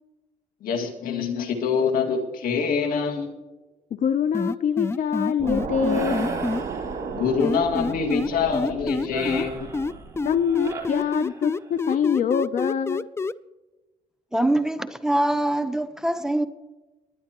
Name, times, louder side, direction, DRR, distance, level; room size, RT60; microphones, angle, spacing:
voice 1, 0.6-3.3 7.1-9.7, left 6 dB, 80° left, 2.1 m, -25 dB
voice 2, 4.0-6.3 10.2-13.1, left 7 dB, 60° left, 0.7 m, -24 dB
sound 1, 4.3-6.6 7.4-9.4 9.7-13.3, left 3 dB, 15° left, 0.4 m, -27 dB
sound 2, 5.4-10.7, right 5 dB, 55° right, 2.5 m, -34 dB
sound 3, 5.9-7.4 9.1-11.8, right 3 dB, 20° right, 2.8 m, -37 dB
voice 3, 14.3-16.5, right 1 dB, 5° right, 0.8 m, -23 dB
21.0 x 10.0 x 3.0 m
cardioid pair, 95°, 15 cm